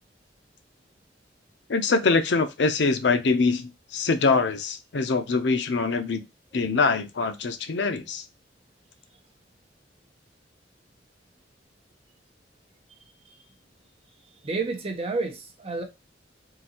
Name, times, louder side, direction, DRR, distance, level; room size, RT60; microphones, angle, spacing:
voice 1, 1.7-6.2 6.5-8.2, left 4 dB, 75° left, 0.6 m, -24 dB
voice 2, 14.4-15.8, right 3 dB, 35° right, 0.8 m, -30 dB
3.8 x 2.6 x 2.8 m
head